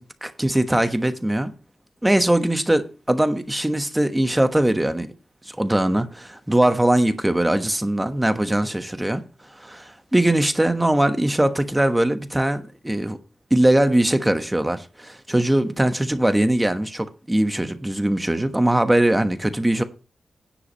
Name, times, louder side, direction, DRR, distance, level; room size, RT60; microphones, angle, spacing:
voice 1, 0.2-1.5 2.0-5.1 5.5-9.2 9.6-13.2 13.5-19.8, right 1 dB, 10° right, 1.1 m, -21 dB
10.0 x 4.8 x 7.3 m
wide cardioid pair, 95°, 0 cm